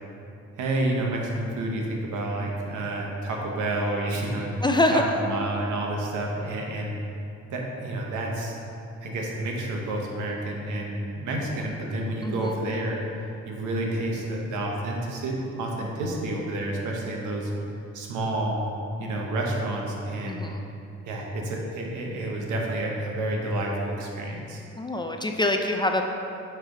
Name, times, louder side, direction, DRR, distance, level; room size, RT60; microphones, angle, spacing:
voice 1, 0.6-4.5 4.9-7.0 7.5-8.5 9.0-13.0 13.4-17.5 17.9-18.6 19.0-20.5 21.1-24.6, right 1 dB, 80° right, -1 dB, 1.1 m, -29 dB
voice 2, 4.6-5.0 12.2-12.5 20.3-20.6 24.8-26.0, left 2 dB, 15° left, 3 dB, 0.3 m, -24 dB
9.0 x 3.4 x 3.8 m, 2.7 s
cardioid pair, 90°, 30 cm